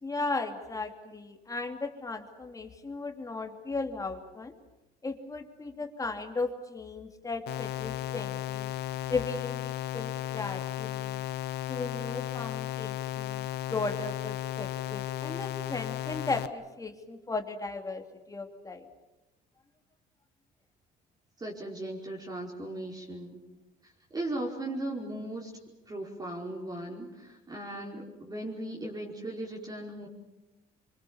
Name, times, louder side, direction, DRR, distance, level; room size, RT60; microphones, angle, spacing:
voice 1, 0.0-4.5 5.0-8.7 9.1-11.3 11.7-18.9, left 3 dB, 20° left, 5 dB, 2.8 m, -36 dB
sound 1, 7.5-16.5, left 13 dB, 80° left, 1.0 m, -35 dB
voice 2, 21.4-23.4 23.8-25.5 25.9-30.1, right 1 dB, 25° right, -3 dB, 5.0 m, -37 dB
26.0 x 24.5 x 7.2 m, 1.1 s
cardioid pair, 110°, 17 cm